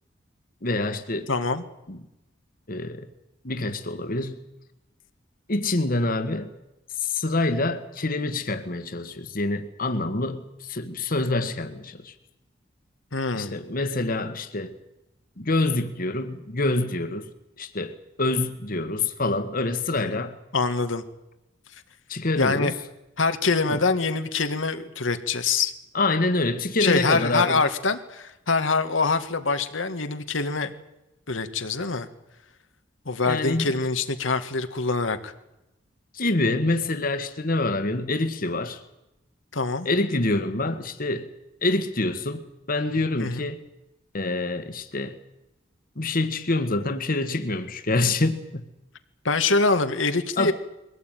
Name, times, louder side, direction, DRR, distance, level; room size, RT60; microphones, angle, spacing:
voice 1, 0.6-1.3 1.9-2.0 2.7-3.1 3.4-4.4 5.5-6.5 7.0-12.1 13.3-14.7 15.4-17.3 17.6-20.4 22.1-22.7 23.7-23.8 25.9-27.6 33.2-33.7 36.1-38.8 39.8-41.3 41.6-43.6 44.1-45.2 45.9-48.6 50.4-50.5, left 2 dB, 50° left, 1.6 m, -26 dB
voice 2, 1.3-1.6 13.1-13.5 19.9-20.1 20.5-21.0 22.4-22.7 23.2-25.7 26.8-30.7 31.3-32.1 33.1-35.3 39.5-39.9 43.2-43.5 49.3-50.5, left 4 dB, 90° left, 1.8 m, -24 dB
22.5 x 17.0 x 9.2 m
head